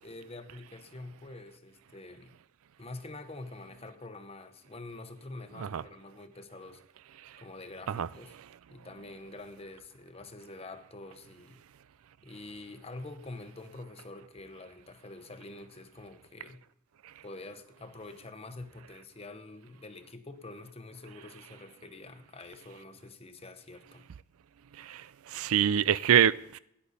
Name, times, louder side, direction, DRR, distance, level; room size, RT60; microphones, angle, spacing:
voice 1, 0.0-2.4 2.8-6.8 7.4-8.4 8.7-11.6 12.2-16.6 17.2-24.1, left 2 dB, 30° left, 0.9 m, -46 dB
voice 2, 25.3-26.6, right 9 dB, 85° right, 0.4 m, -25 dB
17.0 x 10.0 x 4.1 m
head